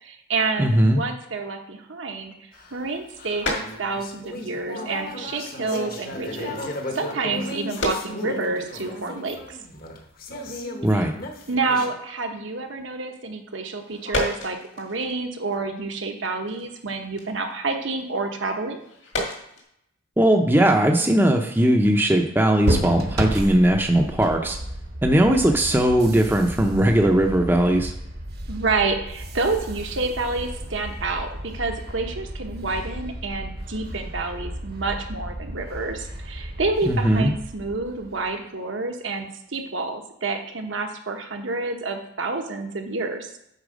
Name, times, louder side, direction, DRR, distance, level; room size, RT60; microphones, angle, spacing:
voice 1, 0.0-6.6 6.9-9.6 10.9-11.1 11.5-18.8 28.5-43.3, right 3 dB, 75° right, 4 dB, 1.1 m, -28 dB
voice 2, 0.6-1.0 10.8-11.1 20.2-24.6 25.0-27.9 36.9-37.3, right 1 dB, 10° right, 2 dB, 0.6 m, -19 dB
sound 1, 2.5-4.2 4.6-4.9 5.4-5.6 5.9-6.0 6.3-6.4 7.3-8.8 9.2-9.3 9.5-9.9 10.2-10.3 10.6-11.0 11.3-11.6 11.9-12.0 13.6-15.6 15.8-19.6, left 1 dB, 65° left, 1.9 m, -33 dB
sound 2, 2.5-11.9, left 2 dB, 45° left, 1.0 m, -35 dB
sound 3, 22.6-38.4, right 1 dB, 50° right, 1.0 m, -33 dB
8.2 x 4.4 x 5.1 m, 0.77 s
head